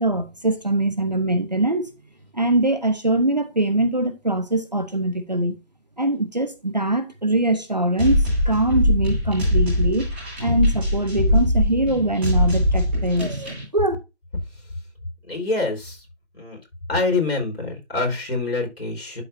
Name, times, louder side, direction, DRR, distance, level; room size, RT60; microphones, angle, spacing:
voice 1, 0.0-1.9 2.3-5.6 6.0-8.2 8.5-10.1 10.4-14.0, right 1 dB, 35° right, 0.8 m, -22 dB
sound 1, 8.0-13.6, left 1 dB, 10° right, 3.1 m, -21 dB
voice 2, 15.3-16.0 16.3-16.6 16.9-19.2, left 3 dB, 55° left, 4.5 m, -25 dB
11.5 x 5.5 x 2.6 m
figure-of-eight pair, 170°, 35 cm